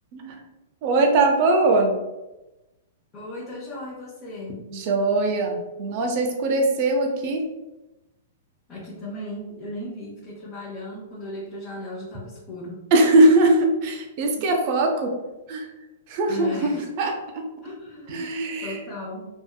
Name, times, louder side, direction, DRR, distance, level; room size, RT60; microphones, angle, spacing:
voice 1, 0.8-1.9 4.7-7.4 12.9-15.1 15.5-15.7 16.1-16.7 17.0-17.4 18.1-18.8, right 2 dB, 45° right, 3 dB, 0.5 m, -21 dB
voice 2, 3.1-4.6 8.7-12.8 16.3-16.8 17.6-19.2, left 1 dB, 30° left, -6 dB, 0.7 m, -36 dB
2.7 x 2.4 x 2.2 m, 1.0 s
hypercardioid pair, 115°, 0 cm